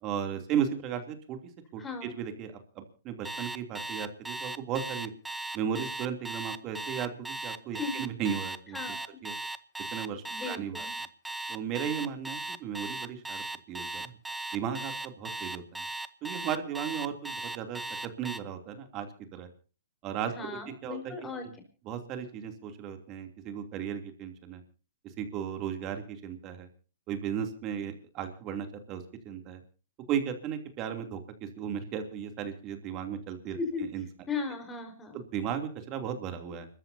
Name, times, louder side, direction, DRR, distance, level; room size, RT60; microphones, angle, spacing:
voice 1, 0.0-1.4 1.7-5.1 5.5-8.9 9.2-9.3 9.9-10.8 11.5-14.1 14.5-15.9 16.2-19.5 20.0-20.3 20.8-21.5 21.9-24.6 25.2-26.7 27.1-29.6 30.1-34.0 35.1-36.7, right 8 dB, 30° right, 6 dB, 2.9 m, -35 dB
voice 2, 1.8-2.1 7.7-8.0 8.7-9.2 10.3-10.9 20.2-21.5 33.5-33.9 34.3-35.2, left 4 dB, 15° left, 5 dB, 4.6 m, -37 dB
Alarm, 3.3-18.4, right 2 dB, 5° right, 0.8 m, -37 dB
29.5 x 14.0 x 2.8 m, 0.37 s
hypercardioid pair, 140°, 0 cm